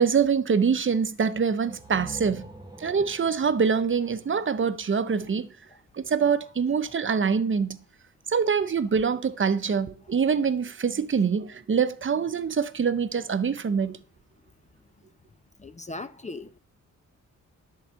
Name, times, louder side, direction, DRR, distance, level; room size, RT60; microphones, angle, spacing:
voice 1, 0.0-2.5 2.8-5.5 5.9-7.8 8.3-14.0, right 6 dB, 40° right, 1.0 m, -24 dB
sound 1, 1.7-5.4, right 2 dB, 10° right, 1.6 m, -45 dB
voice 2, 14.4-15.1 15.6-16.6, left 2 dB, 20° left, 0.9 m, -42 dB
11.0 x 4.9 x 7.7 m
cardioid pair, 75°, 32 cm